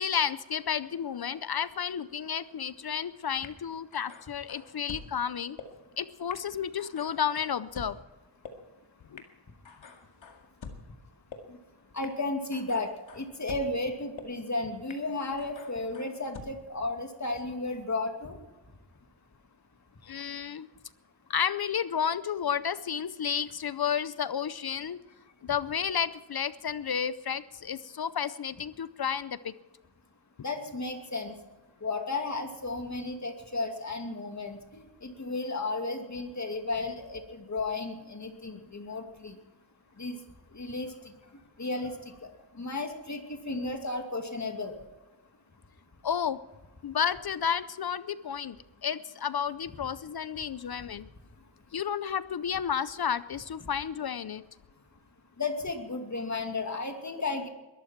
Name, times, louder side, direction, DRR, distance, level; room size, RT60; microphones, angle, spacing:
voice 1, 0.0-5.6 6.0-8.0 9.1-9.2 20.0-20.7 21.3-25.0 25.4-29.5 46.0-46.4 46.8-48.6 48.8-51.1 51.7-54.4, left 8 dB, 55° left, 15 dB, 0.6 m, -31 dB
sound 1, 3.4-3.5 3.9-5.1 5.6-5.7 6.3-6.4 6.8-7.9 8.4-8.5 9.2-9.3 9.6-10.8 11.3-11.4 12.0-12.1 12.5-13.7 14.2-14.3 14.9-15.0 15.4-16.4, left 6 dB, 80° left, 2.2 m, -46 dB
voice 2, 11.9-18.4 30.4-31.3 31.8-39.4 40.0-40.2 40.5-41.1 41.6-42.3 42.6-44.8 55.4-57.5, left 3 dB, 35° left, 4 dB, 2.5 m, -34 dB
21.5 x 13.0 x 4.6 m, 1.1 s
wide cardioid pair, 95°, 46 cm